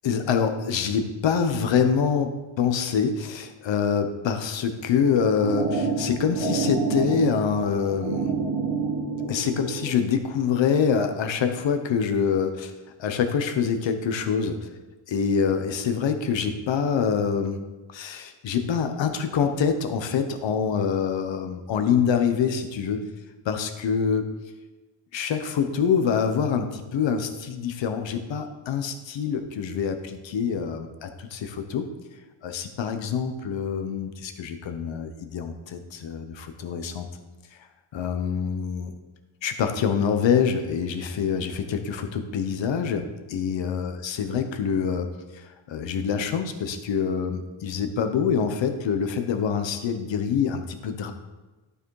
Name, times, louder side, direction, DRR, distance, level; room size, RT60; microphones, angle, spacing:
voice 1, 0.0-8.3 9.3-12.7 13.0-14.6 15.1-17.6 17.9-23.0 23.4-24.2 25.1-31.9 32.4-37.1 37.9-38.9 39.4-45.1 45.7-51.1, left 6 dB, 65° left, 7 dB, 1.0 m, -25 dB
sound 1, 5.0-10.0, right 4 dB, 60° right, 1.5 m, -28 dB
11.5 x 5.0 x 4.8 m, 1.2 s
cardioid pair, 135°, 49 cm